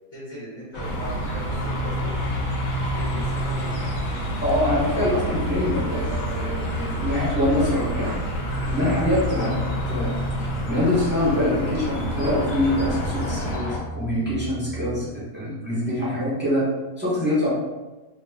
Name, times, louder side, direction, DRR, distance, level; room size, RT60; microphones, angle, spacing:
voice 1, 0.1-1.9 2.9-3.8 9.3-9.5 13.2-13.6 15.9-16.2, equal, 50° left, -8 dB, 1.1 m, -39 dB
sound 1, 0.7-13.8, left 2 dB, 85° left, 0.6 m, -32 dB
sound 2, 0.8-13.6, right 3 dB, 70° right, 1.0 m, -32 dB
sound 3, 1.4-15.1, left 1 dB, 65° left, 1.1 m, -33 dB
voice 2, 4.4-8.1 8.7-10.2 10.6-17.5, left 1 dB, 10° right, -9 dB, 0.5 m, -24 dB
2.8 x 2.0 x 3.4 m, 1.2 s
omnidirectional pair, 1.8 m